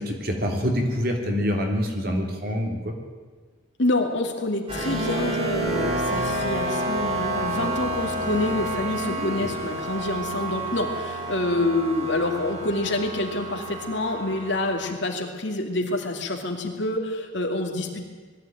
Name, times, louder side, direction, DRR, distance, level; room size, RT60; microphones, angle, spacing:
voice 1, 0.0-2.9 9.0-9.5, equal, 45° right, 2 dB, 3.3 m, -26 dB
voice 2, 3.8-18.0, left 2 dB, 60° left, 2 dB, 2.7 m, -27 dB
sound 1, 4.7-14.7, right 1 dB, 30° right, 4.5 m, -29 dB
20.5 x 14.5 x 9.3 m, 1.4 s
head